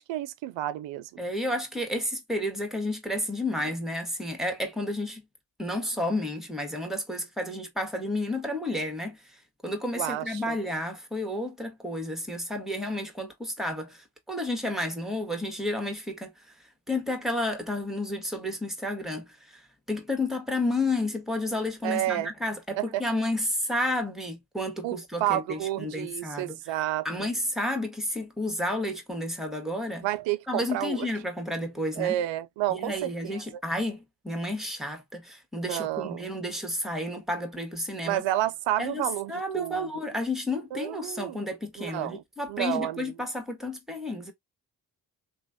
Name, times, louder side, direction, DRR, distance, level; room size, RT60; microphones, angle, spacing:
voice 1, 0.0-1.1 9.9-10.6 21.8-22.3 22.8-23.0 24.8-27.3 30.0-31.1 32.0-33.4 35.6-36.2 38.0-39.9 40.7-41.4 41.8-42.2 42.5-43.1, right 13 dB, 80° right, 0.5 m, -30 dB
voice 2, 1.2-5.2 5.6-9.2 9.6-16.3 16.9-19.6 19.9-26.6 27.0-30.1 30.5-32.2 32.7-38.2 38.8-44.3, left 1 dB, ahead, 1.5 m, -31 dB
3.0 x 2.5 x 2.7 m
supercardioid pair, 40°, 44 cm